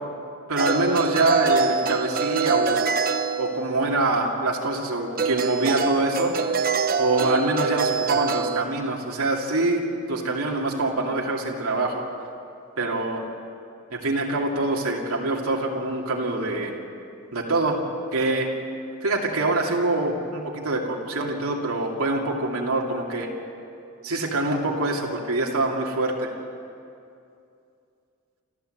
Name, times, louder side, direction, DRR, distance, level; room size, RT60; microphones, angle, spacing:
voice 1, 0.5-2.9 3.4-6.3 7.0-9.8 10.1-12.0 12.8-13.2 13.9-16.8 17.3-17.8 18.1-18.5 19.0-23.3 24.0-26.3, right 2 dB, 75° right, -1 dB, 2.6 m, -25 dB
sound 1, 0.6-3.9 5.2-8.6, right 5 dB, 40° right, 0.8 m, -25 dB
28.0 x 14.0 x 7.9 m, 2.5 s
head